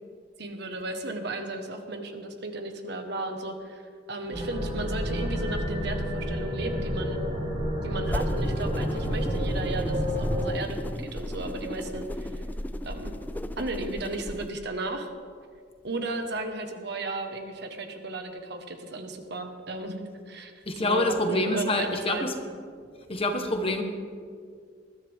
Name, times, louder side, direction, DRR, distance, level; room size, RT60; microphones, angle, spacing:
voice 1, 0.4-7.2 7.8-12.4 12.8-13.1 13.6-15.1 15.8-22.2, right 2 dB, 60° right, 5 dB, 1.5 m, -35 dB
sound 1, 4.3-10.4, equal, 35° right, 3.8 m, -29 dB
sound 2, 8.0-14.5, left 1 dB, 10° left, 0.4 m, -35 dB
voice 2, 20.7-22.3 23.1-23.8, left 2 dB, 30° left, 4 dB, 1.4 m, -26 dB
20.5 x 13.5 x 3.7 m, 2.1 s
head